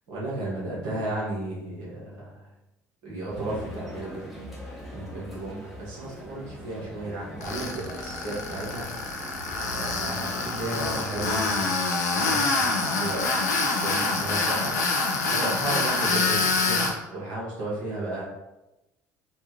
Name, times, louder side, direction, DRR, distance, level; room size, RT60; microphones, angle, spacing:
voice 1, 0.1-2.5 3.0-4.3 4.9-8.9 9.7-11.9 12.2-13.3 13.7-18.2, right 2 dB, 55° right, -6 dB, 1.3 m, -34 dB
sound 1, 3.3-11.6, equal, ahead, 0.9 m, -41 dB
Tools, 7.4-16.9, left 3 dB, 75° left, 0.5 m, -26 dB
4.1 x 2.3 x 2.8 m, 0.96 s
figure-of-eight pair, 60°, 9 cm